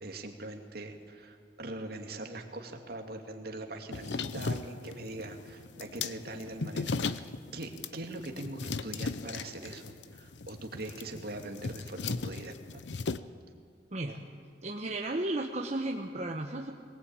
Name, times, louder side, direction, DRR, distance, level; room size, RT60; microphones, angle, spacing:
voice 1, 0.0-12.8, right 2 dB, 60° right, 3 dB, 2.3 m, -42 dB
sound 1, 3.9-13.2, left 4 dB, 90° left, 0.7 m, -37 dB
voice 2, 13.9-14.2 14.6-16.7, right 2 dB, 40° right, 0 dB, 1.1 m, -34 dB
21.5 x 19.0 x 8.8 m, 2.1 s
head